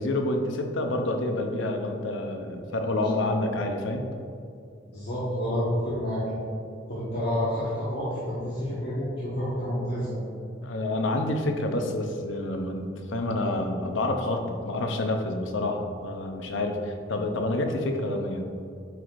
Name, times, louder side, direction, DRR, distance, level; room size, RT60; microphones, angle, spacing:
voice 1, 0.0-4.1 10.6-18.6, left 2 dB, 80° left, 4 dB, 0.7 m, -28 dB
voice 2, 4.8-6.4 6.9-10.2, equal, 60° left, -10 dB, 1.4 m, -29 dB
9.1 x 4.6 x 2.5 m, 2.4 s
head